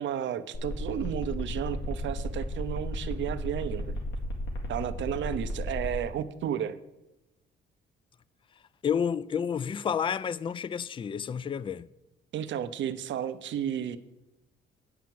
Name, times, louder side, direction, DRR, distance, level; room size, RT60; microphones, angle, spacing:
voice 1, 0.0-3.9 4.7-6.8 12.3-14.0, right 9 dB, 70° right, 0.7 m, -32 dB
sound 1, 0.5-6.0, left 1 dB, 75° left, 2.3 m, -33 dB
voice 2, 8.8-11.9, left 7 dB, 25° left, 0.3 m, -30 dB
8.3 x 5.8 x 7.7 m
cardioid pair, 90°, 20 cm